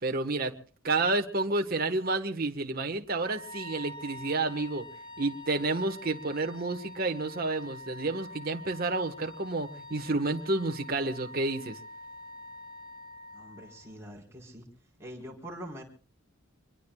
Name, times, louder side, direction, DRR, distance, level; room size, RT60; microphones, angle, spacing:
voice 1, 0.0-0.5 0.8-4.9 5.2-11.8, right 2 dB, 45° right, 5 dB, 1.4 m, -30 dB
Wind instrument woodwind instrument, 3.2-14.0, left 1 dB, 20° left, 2.6 m, -46 dB
voice 2, 13.3-14.6 15.0-15.8, equal, 15° right, -1 dB, 4.4 m, -44 dB
26.0 x 22.0 x 2.4 m, 0.39 s
head